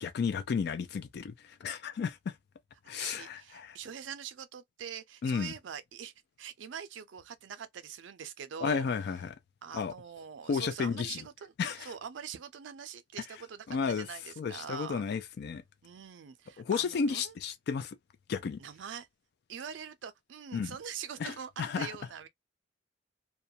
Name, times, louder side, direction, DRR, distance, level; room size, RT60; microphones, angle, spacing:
voice 1, 0.0-2.4 2.9-3.8 5.2-5.5 8.6-9.4 9.7-9.9 10.5-11.2 11.6-11.9 13.7-14.1 14.4-15.6 16.6-18.0 18.3-18.6 20.5-20.7 21.2-22.0, left 5 dB, 60° left, 0.3 m, -33 dB
voice 2, 2.9-6.1 6.4-8.9 9.6-11.5 11.8-15.0 15.8-17.3 18.6-19.1 19.5-21.5 21.8-22.3, right 7 dB, 85° right, 0.4 m, -43 dB
2.3 x 2.1 x 2.6 m
head